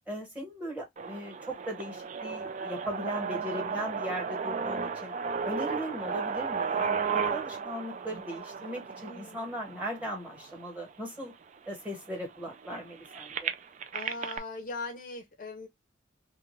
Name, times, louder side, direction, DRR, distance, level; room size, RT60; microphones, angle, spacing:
voice 1, 0.1-5.1 5.4-11.3 11.7-13.5, equal, 5° right, 1.2 m, -38 dB
sound 1, 1.0-10.9 11.6-11.7 11.9-14.4, right 6 dB, 35° right, 0.3 m, -34 dB
voice 2, 9.0-9.8 13.9-15.7, left 3 dB, 40° left, 0.6 m, -40 dB
2.9 x 2.5 x 3.1 m
head